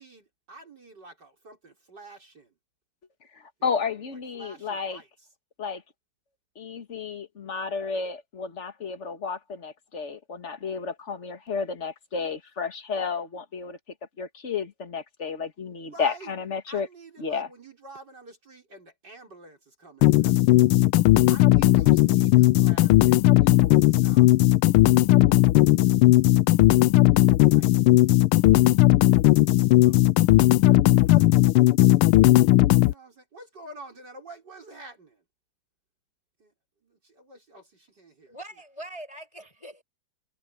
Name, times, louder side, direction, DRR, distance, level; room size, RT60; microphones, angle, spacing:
voice 1, 0.0-2.6 3.6-4.0 4.3-5.3 15.8-16.3 16.7-20.9 21.3-26.2 27.0-28.2 29.5-30.0 30.6-31.4 32.9-35.2 36.4-36.5 36.8-38.4, right 2 dB, 50° right, 6.3 m, -49 dB
voice 2, 3.3-5.0 5.6-5.8 6.6-13.8 14.2-16.9 17.2-17.5, left 5 dB, 35° left, 2.0 m, -32 dB
sound 1, 20.0-32.9, left 17 dB, 80° left, 1.5 m, -17 dB
voice 3, 38.3-39.8, right 1 dB, 15° left, 5.1 m, -42 dB
omnidirectional pair, 2.4 m